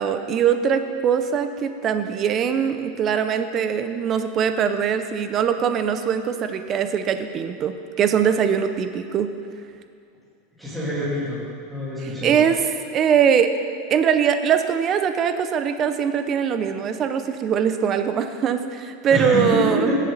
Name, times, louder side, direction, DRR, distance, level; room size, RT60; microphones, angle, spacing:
voice 1, 0.0-9.3 12.2-12.6 12.9-13.5 13.9-19.9, right 7 dB, 25° right, 9 dB, 0.6 m, -22 dB
voice 2, 10.6-11.4 11.7-12.4 19.1-20.0, equal, ahead, -11 dB, 3.0 m, -25 dB
17.5 x 7.4 x 4.0 m, 2.3 s
supercardioid pair, 165°, 0 cm